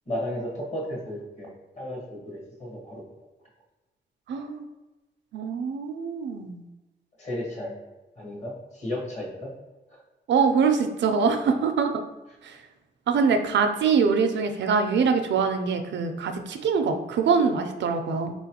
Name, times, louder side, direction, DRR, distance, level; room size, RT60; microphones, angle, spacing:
voice 1, 0.1-3.0 7.2-7.8 8.2-9.5 9.9-10.0, left 1 dB, 40° left, -2 dB, 1.1 m, -34 dB
voice 2, 4.3-4.6 5.3-6.6 10.3-12.0 12.4-12.5 13.1-18.3, right 5 dB, 85° right, 7 dB, 0.5 m, -24 dB
4.3 x 3.0 x 2.8 m, 1.1 s
wide cardioid pair, 165°, 18 cm